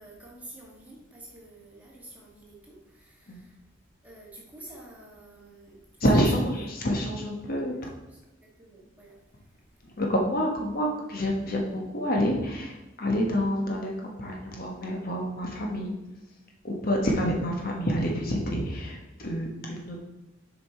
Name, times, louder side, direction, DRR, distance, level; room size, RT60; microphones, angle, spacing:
voice 1, 0.0-3.6 4.0-5.8 6.1-6.7 7.7-7.8 8.1-8.2 8.6-9.2, right 1 dB, 10° right, -4 dB, 1.7 m, -48 dB
voice 2, 6.0-7.8 9.8-15.9 16.6-20.0, equal, 50° left, 0 dB, 1.2 m, -28 dB
7.1 x 5.2 x 4.3 m, 1.0 s
head